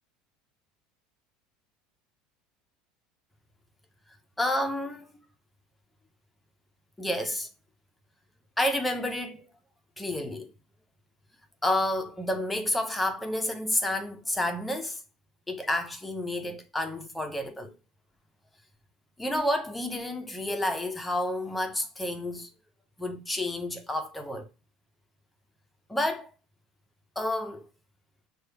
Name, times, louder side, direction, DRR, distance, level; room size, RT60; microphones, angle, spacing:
voice 1, 4.4-5.1 7.0-7.5 8.6-9.5 10.0-10.5 11.6-15.0 15.5-17.7 19.2-22.5 23.0-24.5 25.9-26.3 27.2-27.7, left 1 dB, 5° left, 0.5 m, -30 dB
5.8 x 2.2 x 3.3 m
cardioid pair, 155°, 0 cm